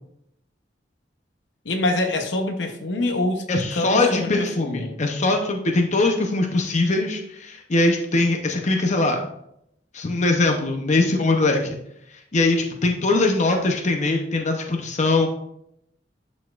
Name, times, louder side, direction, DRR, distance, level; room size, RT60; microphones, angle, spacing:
voice 1, 1.6-5.0, left 2 dB, 75° left, 0.9 m, -25 dB
voice 2, 3.5-9.3 9.9-11.8 12.3-15.3, left 2 dB, 40° left, 0.7 m, -21 dB
11.0 x 4.2 x 2.4 m
head